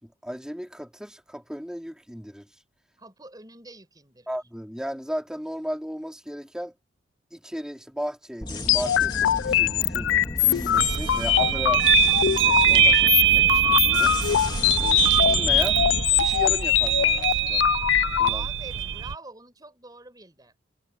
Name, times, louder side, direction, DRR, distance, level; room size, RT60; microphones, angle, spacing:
voice 1, 0.0-2.5 4.3-6.8 7.3-10.1 10.5-14.1 14.8-15.8 16.1-17.6 18.2-18.5, equal, 5° right, 4.2 m, -35 dB
voice 2, 3.0-4.4 18.3-20.5, right 3 dB, 20° right, 5.4 m, -45 dB
sound 1, 8.4-16.0, left 1 dB, 25° left, 2.9 m, -35 dB
sound 2, 8.7-18.3, left 11 dB, 80° left, 0.3 m, -22 dB
sound 3, 10.8-19.1, right 11 dB, 80° right, 0.7 m, -23 dB
head